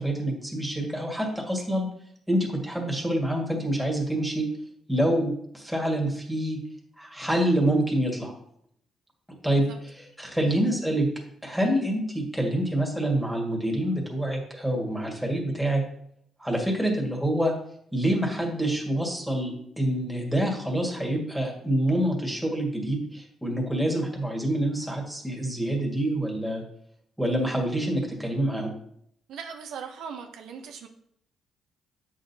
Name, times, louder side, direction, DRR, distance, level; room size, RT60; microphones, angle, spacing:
voice 1, 0.0-1.9 2.3-4.5 4.9-6.6 7.0-8.3 9.4-11.1 11.4-15.8 16.4-17.6 17.9-26.6 27.2-28.7, right 1 dB, ahead, 0 dB, 1.9 m, -26 dB
voice 2, 29.3-30.9, right 6 dB, 80° right, 4 dB, 0.7 m, -39 dB
8.0 x 6.4 x 2.8 m, 0.70 s
cardioid pair, 90°, 0 cm